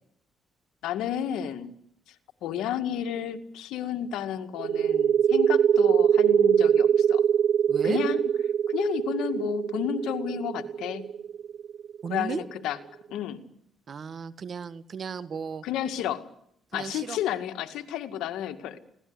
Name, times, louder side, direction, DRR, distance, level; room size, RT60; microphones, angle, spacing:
voice 1, 0.8-1.8 2.4-7.2 7.8-8.3 8.7-11.0 12.1-12.8 13.1-13.4 15.6-16.3 16.7-18.8, left 10 dB, 90° left, 8 dB, 2.1 m, -31 dB
sound 1, 4.6-12.0, right 8 dB, 70° right, 1.1 m, -23 dB
voice 2, 7.7-8.0 12.0-12.5 13.9-15.6 16.7-17.2, right 6 dB, 50° right, 13 dB, 1.7 m, -35 dB
24.5 x 18.0 x 9.7 m, 0.73 s
cardioid pair, 90°, 0 cm